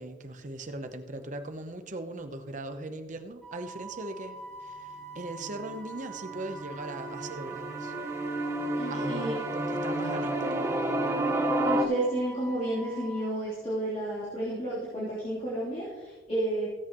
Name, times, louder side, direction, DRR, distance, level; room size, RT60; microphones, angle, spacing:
voice 1, 0.0-7.9 8.9-10.8, right 2 dB, 45° right, 8 dB, 0.8 m, -39 dB
Wind instrument woodwind instrument, 3.4-13.3, right 3 dB, ahead, 2.0 m, -44 dB
sound 1, 5.5-5.8 6.1-11.8, right 1 dB, 15° right, 0.8 m, -30 dB
voice 2, 8.8-9.4 11.6-16.7, right 1 dB, 35° left, -9 dB, 3.4 m, -31 dB
16.5 x 8.3 x 3.0 m, 1.3 s
head